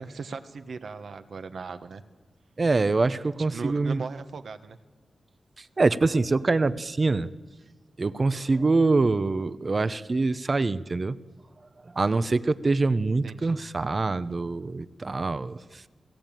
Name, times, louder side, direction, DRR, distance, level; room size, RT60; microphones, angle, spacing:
voice 1, 0.0-2.0 3.4-4.8 13.2-13.6, right 4 dB, 70° right, 9 dB, 1.5 m, -38 dB
voice 2, 2.6-4.0 5.6-7.3 8.0-11.2 11.9-15.8, right 3 dB, 35° right, 14 dB, 0.8 m, -25 dB
29.5 x 17.5 x 9.2 m, 1.3 s
wide cardioid pair, 120°, 0 cm